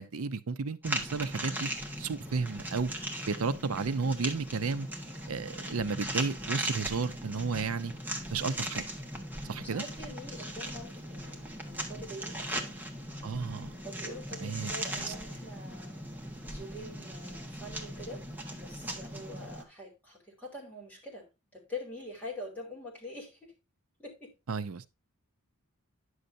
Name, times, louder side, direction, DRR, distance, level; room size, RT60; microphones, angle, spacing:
voice 1, 0.0-1.7 2.0-2.9 3.3-4.9 5.3-7.9 8.3-8.8 9.5-9.8 13.2-13.7 14.4-14.7 15.1-15.2 24.5-24.9, right 4 dB, 70° right, 0.6 m, -32 dB
sound 1, 0.8-19.6, right 1 dB, 10° right, 1.3 m, -38 dB
voice 2, 9.6-12.8 13.8-18.3 18.5-23.5 24.0-24.3, left 1 dB, 10° left, 3.1 m, -45 dB
10.0 x 6.5 x 2.7 m
head